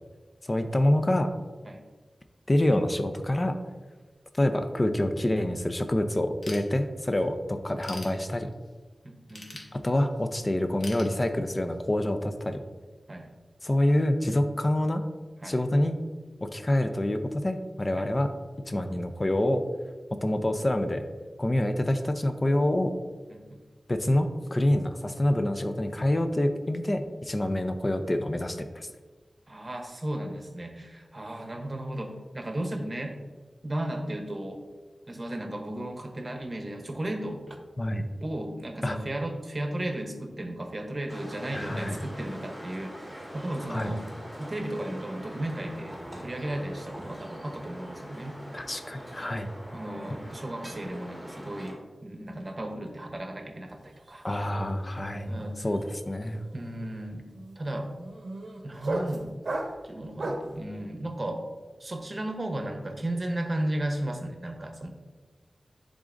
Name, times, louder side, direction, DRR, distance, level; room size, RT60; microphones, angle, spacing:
voice 1, 0.4-1.3 2.5-3.6 4.4-8.5 9.7-12.6 13.6-15.0 15.5-16.0 16.4-18.3 18.7-19.6 20.2-21.0 21.4-22.9 23.9-28.9 37.8-38.0 38.8-39.0 41.5-42.0 43.7-43.9 48.5-49.5 54.2-55.4 55.6-56.4, left 1 dB, 30° left, 7 dB, 0.5 m, -26 dB
Ratchet pawl / Tools, 6.4-7.2 7.6-8.7 9.3-10.3 10.8-11.8, left 2 dB, 75° left, 1.1 m, -44 dB
voice 2, 9.0-9.7 13.1-13.3 15.4-15.6 18.0-18.1 23.3-23.6 29.5-33.2 33.6-34.6 35.1-37.6 38.2-44.1 44.4-48.4 49.7-54.2 55.3-55.7 56.5-57.3 57.6-57.9 58.6-59.3 59.8-61.4 61.8-64.9, right 1 dB, 35° right, 3 dB, 0.9 m, -35 dB
sound 1, 41.1-51.7, equal, 5° left, 1.9 m, -43 dB
sound 2, 53.8-54.1 54.3-60.6, right 2 dB, 70° right, 0.7 m, -36 dB
10.0 x 3.8 x 2.6 m, 1.4 s
wide cardioid pair, 90°, 0 cm